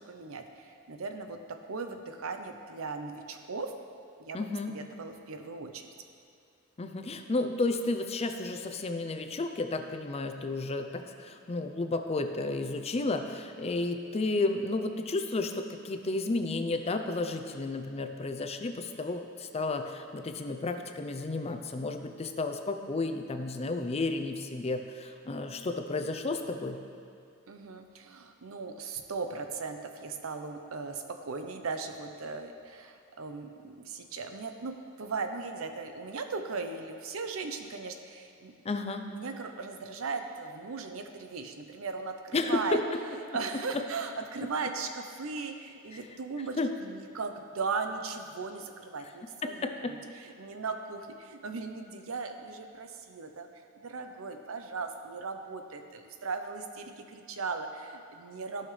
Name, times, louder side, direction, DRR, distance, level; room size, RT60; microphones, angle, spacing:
voice 1, 0.0-1.4 1.7-3.7 4.2-4.4 4.7-5.9 27.5-38.5 39.1-42.8 43.3-53.5 53.7-58.7, right 4 dB, 90° right, 6 dB, 0.7 m, -38 dB
voice 2, 4.3-4.7 6.8-26.8 38.6-39.0 42.3-42.6 46.6-46.7 49.4-49.9, left 3 dB, 30° left, 6 dB, 0.5 m, -32 dB
14.5 x 5.7 x 3.2 m, 2.5 s
head